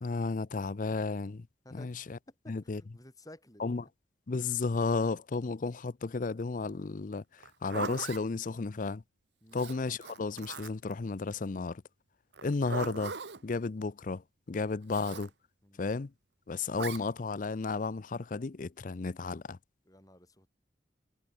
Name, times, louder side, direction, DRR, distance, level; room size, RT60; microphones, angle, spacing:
voice 1, 0.0-1.5 1.7-2.2 2.5-2.8 3.6-3.8 4.3-7.2 7.6-9.0 9.5-11.8 12.4-13.1 13.4-14.2 14.5-15.3 15.8-16.1 16.5-19.6, left 4 dB, 45° left, 0.5 m, -33 dB
voice 2, 2.4-3.9 9.4-9.6 15.6-15.8 19.8-20.5, left 1 dB, 20° left, 7.9 m, -54 dB
Zipper (clothing), 7.4-8.2 9.5-10.9 12.3-13.4 14.9-15.3 16.8-17.0, right 4 dB, 70° right, 1.2 m, -39 dB
head